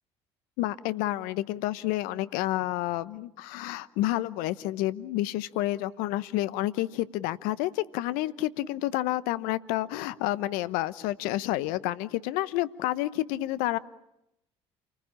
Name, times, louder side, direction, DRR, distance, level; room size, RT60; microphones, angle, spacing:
voice 1, 0.6-13.8, left 16 dB, 70° left, 16 dB, 1.0 m, -29 dB
29.0 x 20.0 x 8.7 m, 0.86 s
hypercardioid pair, 60°, 15 cm